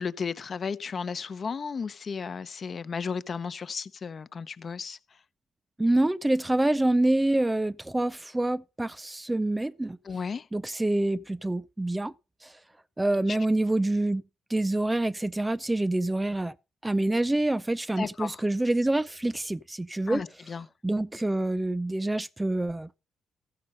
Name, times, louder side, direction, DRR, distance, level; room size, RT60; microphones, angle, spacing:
voice 1, 0.0-5.0 10.0-10.5 13.3-13.4 18.0-18.4 20.1-20.7, left 5 dB, 45° left, 0.7 m, -34 dB
voice 2, 5.8-10.0 10.5-12.1 12.4-12.5 13.0-14.2 14.5-16.5 16.8-20.2 20.8-22.9, right 1 dB, 10° right, 0.5 m, -26 dB
14.0 x 6.3 x 5.5 m
cardioid pair, 90°, 0 cm